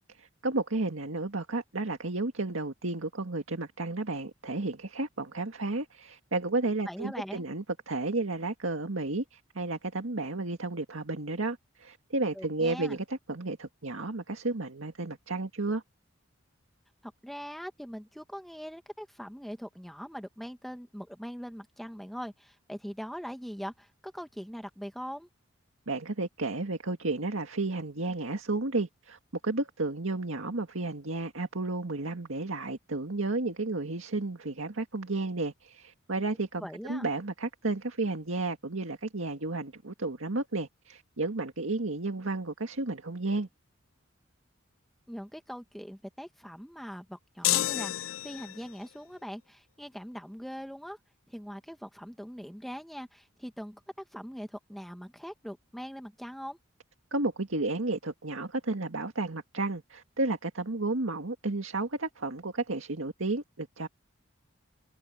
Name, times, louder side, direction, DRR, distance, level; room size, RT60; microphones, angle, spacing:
voice 1, 0.4-15.8 25.9-43.5 57.1-63.9, right 2 dB, 80° right, 1.9 m, -32 dB
voice 2, 6.9-7.5 12.3-13.0 17.0-25.3 36.6-37.0 45.1-51.0 51.3-53.8 54.1-56.6, equal, ahead, 1.6 m, -41 dB
sound 1, 47.4-48.8, left 14 dB, 80° left, 0.4 m, -29 dB
head